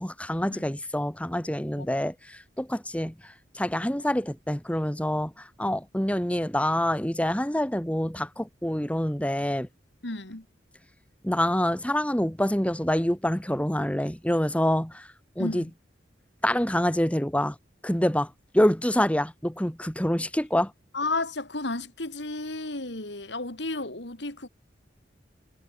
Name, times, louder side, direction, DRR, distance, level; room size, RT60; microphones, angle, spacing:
voice 1, 0.0-3.1 3.5-9.7 11.2-15.1 15.4-15.7 16.4-17.6 17.8-20.7, left 1 dB, 5° left, 2.1 m, -26 dB
voice 2, 10.0-10.5 15.4-15.7 20.9-24.5, left 2 dB, 70° left, 3.7 m, -32 dB
head